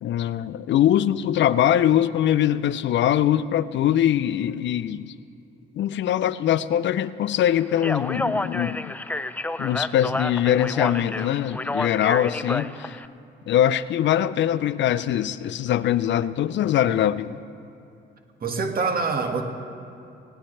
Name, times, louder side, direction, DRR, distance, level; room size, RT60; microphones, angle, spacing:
voice 1, 0.0-5.1 5.7-8.9 9.6-13.0 13.5-17.4, left 11 dB, 65° left, 15 dB, 0.6 m, -22 dB
Speech, 7.7-13.1, left 2 dB, 10° left, 0.4 m, -30 dB
voice 2, 18.4-19.4, right 4 dB, 50° right, 4 dB, 1.8 m, -25 dB
20.5 x 17.0 x 3.3 m, 2.7 s
cardioid pair, 90°, 20 cm